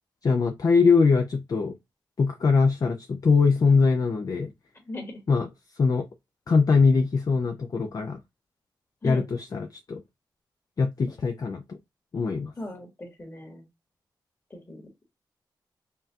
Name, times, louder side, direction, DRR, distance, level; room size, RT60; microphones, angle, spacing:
voice 1, 0.2-1.7 2.2-4.5 5.3-5.5 5.8-6.1 6.5-8.2 9.0-10.0 10.8-11.8 12.1-12.5, left 4 dB, 50° left, 0.5 m, -22 dB
voice 2, 12.6-13.7 14.5-14.8, left 1 dB, 30° left, 1.7 m, -37 dB
5.4 x 2.4 x 2.7 m
cardioid pair, 80°, 8 cm